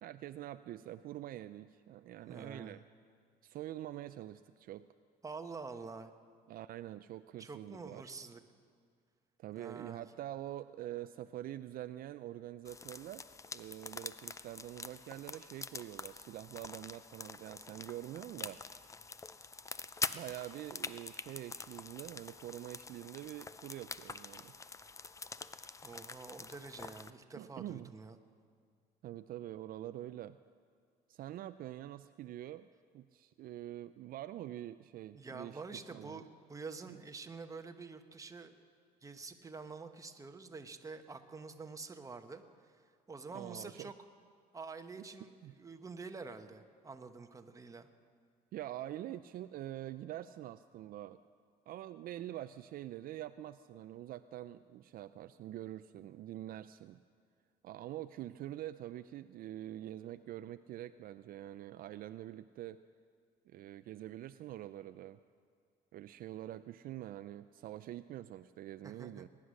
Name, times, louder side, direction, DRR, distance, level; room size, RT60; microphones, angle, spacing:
voice 1, 0.0-2.8 3.4-4.9 6.5-8.1 9.4-13.2 13.5-18.6 20.1-24.5 27.3-27.9 29.0-30.4 31.1-32.7 32.9-35.6 35.9-36.2 43.3-43.9 45.4-45.5 48.5-51.2 51.7-57.0 57.6-62.8 63.5-65.2 65.9-69.3, right 13 dB, 60° right, 11 dB, 0.4 m, -45 dB
voice 2, 2.3-2.8 5.2-6.1 7.4-8.4 9.6-10.1 25.8-28.2 35.1-38.5 39.0-43.9 44.5-47.9 68.8-69.3, right 4 dB, 20° right, 7 dB, 1.0 m, -47 dB
sound 1, 12.6-27.1, left 4 dB, 20° left, 0.4 m, -45 dB
21.0 x 9.8 x 6.4 m, 2.2 s
cardioid pair, 110°, 17 cm